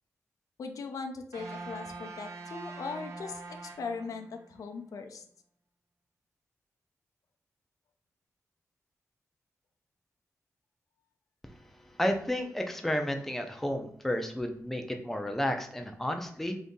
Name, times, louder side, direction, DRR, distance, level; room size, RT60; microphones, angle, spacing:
voice 1, 0.6-5.2, left 4 dB, 85° left, 5 dB, 0.5 m, -39 dB
sound 1, 1.3-4.6, right 3 dB, 80° right, 1.0 m, -43 dB
voice 2, 12.0-16.6, left 1 dB, 5° left, 4 dB, 0.4 m, -32 dB
3.9 x 2.7 x 3.6 m, 0.63 s
wide cardioid pair, 150°, 6 cm